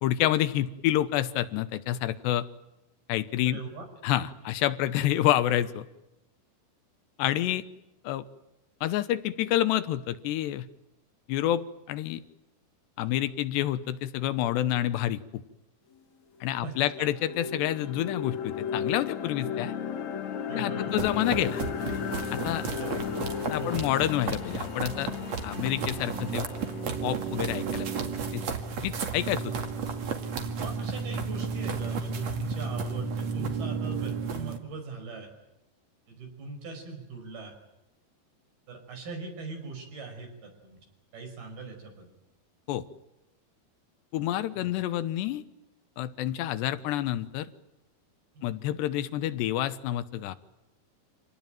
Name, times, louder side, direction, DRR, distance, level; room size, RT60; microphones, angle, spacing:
voice 1, 0.0-2.5 3.1-3.6 4.0-5.9 7.2-7.6 8.0-8.2 8.8-10.7 11.3-11.6 11.9-12.2 13.0-15.4 16.4-19.7 20.5-21.6 22.3-22.6 23.5-25.1 25.4-26.5 27.0-28.0 28.3-28.4 28.8-29.5 42.7-42.8 44.1-45.4 46.0-47.5 48.4-50.4, left 12 dB, 85° left, 13 dB, 3.2 m, -28 dB
voice 2, 3.5-3.8 16.6-17.1 20.5-21.0 22.8-23.1 23.6-23.8 30.6-35.3 36.1-37.5 38.7-40.8 41.1-42.1 44.5-44.7 48.3-48.4, right 4 dB, 65° right, 4 dB, 7.5 m, -40 dB
sound 1, 15.9-16.0 16.5-28.5, left 8 dB, 55° left, 2.4 m, -35 dB
sound 2, 20.9-34.6, right 5 dB, 45° right, 2.9 m, -33 dB
27.0 x 18.5 x 9.2 m, 0.96 s
omnidirectional pair, 4.8 m